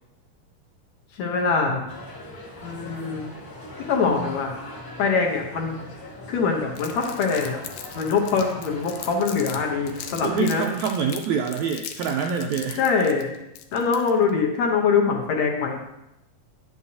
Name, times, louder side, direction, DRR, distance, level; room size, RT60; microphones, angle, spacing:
voice 1, 1.1-1.9 2.6-3.3 3.9-4.5 5.0-5.8 6.3-7.6 8.0-10.7 12.8-13.3 13.7-15.8, left 5 dB, 65° left, 1 dB, 2.0 m, -23 dB
Street Cafe very busy no traffic - Stereo Ambience, 1.9-10.5, left 1 dB, 35° left, 1.4 m, -41 dB
Crumpling crinkling, 6.8-9.6 9.9-14.3, left 9 dB, 85° left, 2.3 m, -39 dB
voice 2, 10.2-12.8, right 6 dB, 90° right, 3 dB, 1.6 m, -26 dB
10.0 x 8.5 x 2.8 m, 0.88 s
omnidirectional pair, 3.8 m